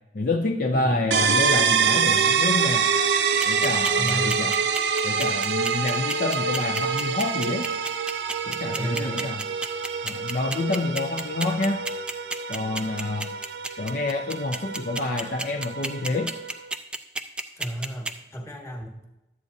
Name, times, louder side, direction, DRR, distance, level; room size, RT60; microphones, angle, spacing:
voice 1, 0.1-2.9 3.4-4.6 5.0-7.7 8.5-9.4 10.0-11.8 12.5-13.3 13.8-16.3, left 2 dB, 50° left, 3 dB, 0.5 m, -28 dB
voice 2, 0.7-1.2 3.9-4.5 8.7-9.2 17.6-19.1, equal, 15° left, 0 dB, 1.3 m, -33 dB
sound 1, 1.1-16.7, right 6 dB, 80° right, 0.5 m, -26 dB
sound 2, 3.4-18.1, right 2 dB, 5° right, 0.4 m, -30 dB
12.0 x 8.3 x 2.7 m, 0.96 s
head